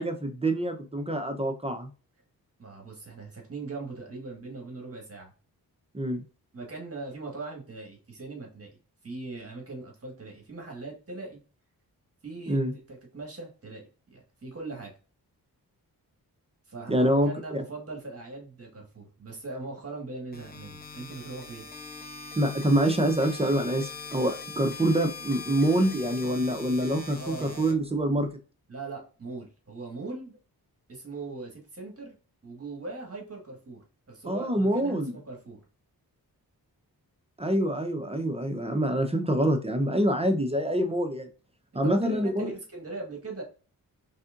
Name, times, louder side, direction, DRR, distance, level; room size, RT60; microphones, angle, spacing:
voice 1, 0.0-1.9 5.9-6.2 12.5-12.7 16.9-17.6 22.4-28.3 34.3-35.1 37.4-41.3 41.7-42.5, right 1 dB, 15° right, 6 dB, 0.6 m, -26 dB
voice 2, 2.6-5.3 6.5-11.4 12.2-12.6 12.9-14.9 16.7-21.7 27.1-27.7 28.7-30.4 30.9-32.2 32.4-35.6 41.7-43.4, right 3 dB, 40° right, 0 dB, 1.6 m, -40 dB
sound 1, 20.3-28.3, left 4 dB, 25° left, 0.8 m, -42 dB
4.2 x 3.5 x 2.4 m, 0.36 s
cardioid pair, 80°, 38 cm